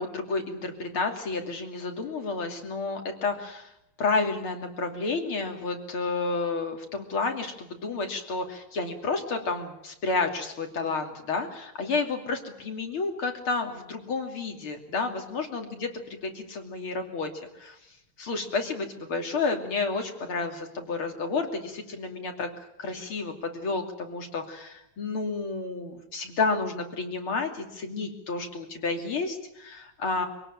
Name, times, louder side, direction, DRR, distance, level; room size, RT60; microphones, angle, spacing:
voice 1, 0.0-3.7 4.0-17.8 18.2-22.5 22.8-30.3, left 3 dB, 80° left, 4 dB, 3.7 m, -31 dB
24.5 x 17.5 x 8.9 m, 0.83 s
omnidirectional pair, 2.3 m